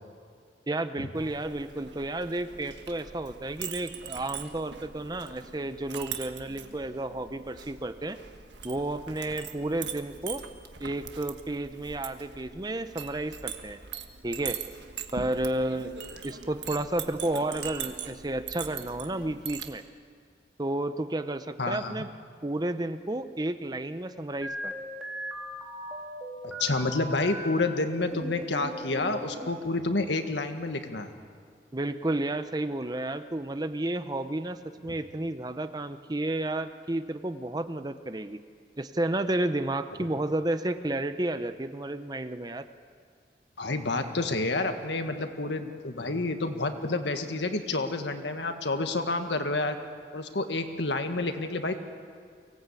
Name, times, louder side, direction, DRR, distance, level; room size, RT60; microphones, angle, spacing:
voice 1, 0.7-8.2 8.6-10.4 10.8-13.8 14.2-14.6 15.1-15.9 16.2-19.8 20.6-22.1 22.4-24.7 31.7-38.4 38.8-42.6, right 1 dB, 20° right, 10 dB, 0.7 m, -31 dB
Chink clink, 1.1-19.7, right 8 dB, 80° right, 1.5 m, -41 dB
voice 2, 21.6-21.9 26.4-31.1 43.6-49.8 50.1-51.8, left 2 dB, 80° left, 6 dB, 1.7 m, -29 dB
sound 1, 24.4-27.4 27.9-29.5, equal, 5° right, 3.3 m, -38 dB
24.0 x 17.5 x 8.4 m, 2.1 s
head